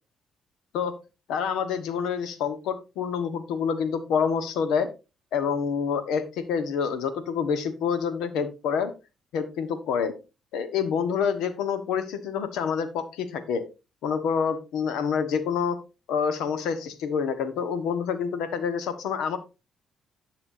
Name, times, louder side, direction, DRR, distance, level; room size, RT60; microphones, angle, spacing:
voice 1, 1.3-4.9 5.3-8.9 9.3-10.1 10.5-13.6 14.0-15.8 16.1-19.4, left 6 dB, 90° left, 11 dB, 1.3 m, -27 dB
11.0 x 6.7 x 2.7 m, 0.28 s
cardioid pair, 90°, 0 cm